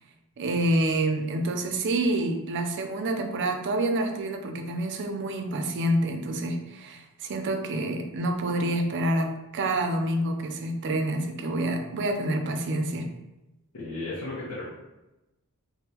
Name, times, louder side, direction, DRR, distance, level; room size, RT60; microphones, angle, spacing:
voice 1, 0.4-13.1, right 1 dB, 55° right, 4 dB, 0.4 m, -27 dB
voice 2, 13.7-14.7, left 2 dB, 75° left, -8 dB, 0.8 m, -34 dB
3.4 x 2.2 x 2.9 m, 0.98 s
head